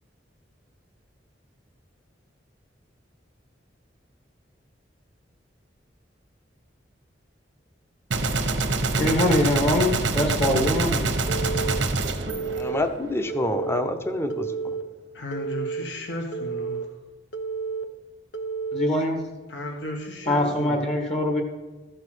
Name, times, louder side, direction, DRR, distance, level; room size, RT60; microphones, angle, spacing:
Gunshot gunfire, 8.1-13.3, right 3 dB, 85° right, 1.1 m, -26 dB
voice 1, 9.0-11.1 18.7-19.2 20.2-21.4, left 1 dB, 35° left, 1 dB, 1.6 m, -23 dB
Telephone, 11.3-11.8 12.3-12.8 13.3-13.8 14.3-14.8 15.3-15.8 16.3-16.8 17.3-17.8 18.3-18.8, right 5 dB, 85° left, 0.9 m, -31 dB
voice 2, 12.5-14.8, left 1 dB, 15° left, 8 dB, 0.8 m, -27 dB
voice 3, 15.1-16.8 19.5-20.8, left 1 dB, 70° left, 2 dB, 1.4 m, -34 dB
14.0 x 5.4 x 6.1 m, 1.2 s
head